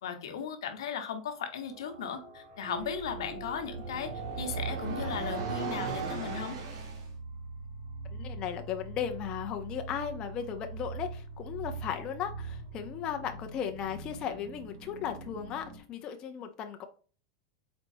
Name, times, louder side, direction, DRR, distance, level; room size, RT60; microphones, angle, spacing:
voice 1, 0.0-4.1 4.4-6.6, left 7 dB, 85° left, 1.0 m, -37 dB
sound 1, 1.6-7.1, right 5 dB, 70° right, 1.6 m, -38 dB
Keyboard (musical), 2.7-5.5, right 8 dB, 40° right, 0.7 m, -48 dB
sound 2, 2.7-15.8, right 2 dB, 90° right, 1.5 m, -43 dB
voice 2, 8.1-16.8, left 8 dB, 30° left, 0.6 m, -36 dB
4.3 x 4.1 x 2.7 m
supercardioid pair, 145°, 3 cm